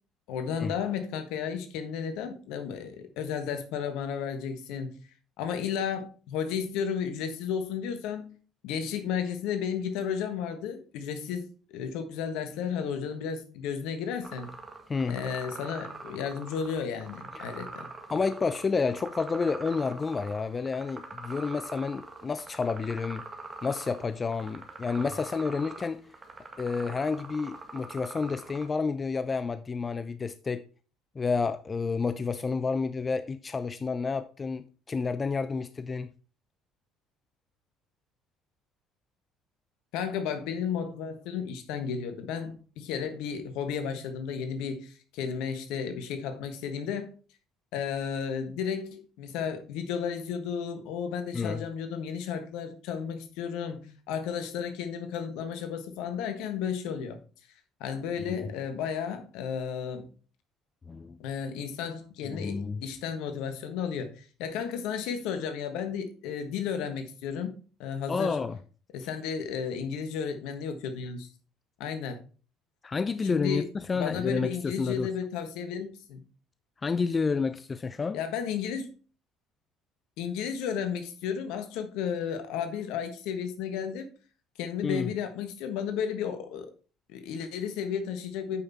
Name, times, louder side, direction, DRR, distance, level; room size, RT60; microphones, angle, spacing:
voice 1, 0.3-5.0 5.4-8.3 8.6-14.5 15.1-17.9 39.9-47.1 47.7-57.2 57.8-60.1 61.2-67.5 67.8-68.4 68.9-71.3 71.8-72.2 73.2-73.6 73.9-76.2 78.1-78.9 80.2-84.1 84.6-86.7 87.1-88.6, left 7 dB, 70° left, 1.3 m, -33 dB
sound 1, 14.2-28.7, right 3 dB, 30° right, 1.7 m, -44 dB
voice 2, 18.1-23.2 23.6-26.0 26.6-30.6 31.2-36.1 51.3-51.6 58.3-58.4 60.9-61.2 62.3-62.8 68.1-68.6 72.8-75.1 76.8-78.2 84.8-85.1, left 4 dB, 30° left, 0.5 m, -30 dB
8.3 x 5.6 x 4.2 m
hypercardioid pair, 65°, 0 cm